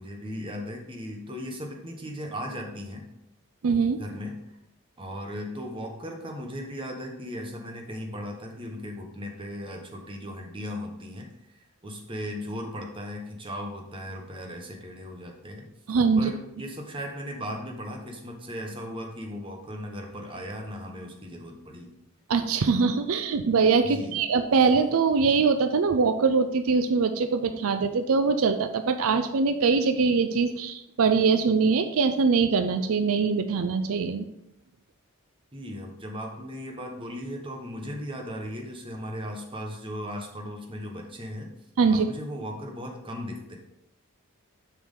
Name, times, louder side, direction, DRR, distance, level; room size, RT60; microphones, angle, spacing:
voice 1, 0.0-3.1 4.0-4.4 5.0-11.3 11.6-15.6 16.2-21.9 23.8-24.2 35.5-41.5 41.9-43.6, equal, 25° right, 2 dB, 1.1 m, -37 dB
voice 2, 3.6-4.0 15.9-16.3 22.3-34.2 41.8-42.1, right 5 dB, 75° right, 9 dB, 0.5 m, -23 dB
7.2 x 6.1 x 3.7 m, 0.82 s
head